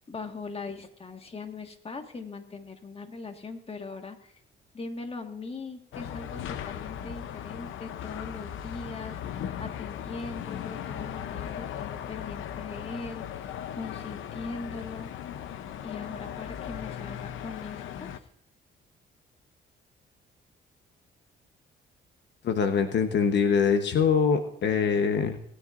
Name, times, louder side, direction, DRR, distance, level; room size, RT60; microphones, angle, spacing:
voice 1, 0.1-4.3 4.7-9.2 9.6-15.1 15.8-18.1, left 4 dB, 30° left, 5 dB, 1.7 m, -40 dB
sound 1, 5.9-18.2, left 9 dB, 80° left, 0.7 m, -38 dB
voice 2, 22.4-25.4, left 6 dB, 60° left, 7 dB, 1.1 m, -24 dB
19.5 x 9.9 x 2.6 m, 0.70 s
cardioid pair, 90°, 20 cm